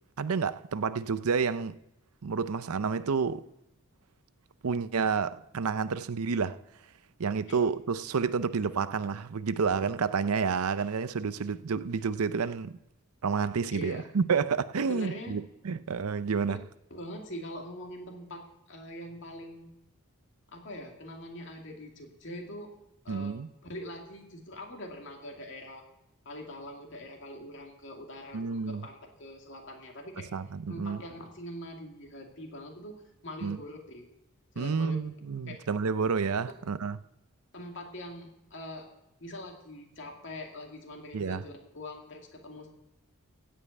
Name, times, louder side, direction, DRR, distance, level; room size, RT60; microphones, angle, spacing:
voice 1, 0.2-1.8 2.2-3.4 4.6-6.6 7.2-12.8 13.2-16.6 23.1-23.5 28.3-28.9 30.3-31.0 33.4-33.6 34.6-37.0 41.1-41.4, right 5 dB, 85° right, 0.6 m, -29 dB
voice 2, 13.7-14.1 14.8-15.4 16.9-19.7 20.5-22.7 23.0-23.3 23.6-25.8 26.2-30.3 30.7-34.1 34.5-35.0 35.5-35.6 37.5-38.9 39.2-42.7, left 1 dB, 55° left, 2.5 m, -43 dB
16.0 x 5.6 x 8.5 m
head